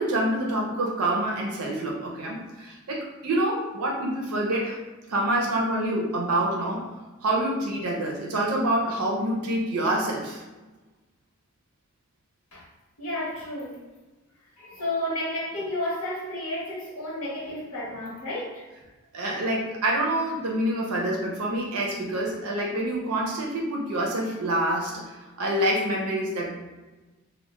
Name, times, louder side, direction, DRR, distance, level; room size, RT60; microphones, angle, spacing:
voice 1, 0.0-4.8 5.1-6.9 7.2-10.4 19.1-25.0 25.4-26.6, right 1 dB, 90° right, 0.5 m, -26 dB
voice 2, 13.0-13.8 14.6-18.7, left 1 dB, 85° left, 0.9 m, -32 dB
2.2 x 2.1 x 2.9 m
head